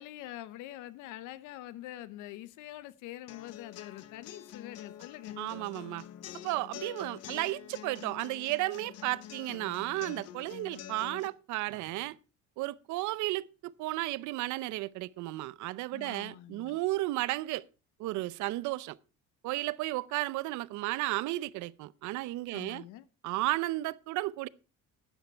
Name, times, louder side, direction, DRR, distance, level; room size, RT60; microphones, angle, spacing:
voice 1, 0.0-5.4 15.9-16.8 22.5-23.0, left 14 dB, 70° left, 0.7 m, -45 dB
sound 1, 3.3-11.3, left 11 dB, 50° left, 1.0 m, -46 dB
voice 2, 5.4-6.0 6.4-12.2 12.6-17.6 18.0-19.0 19.4-22.8 23.2-24.5, right 18 dB, 65° right, 0.6 m, -33 dB
12.5 x 9.2 x 4.5 m
cardioid pair, 170°, 32 cm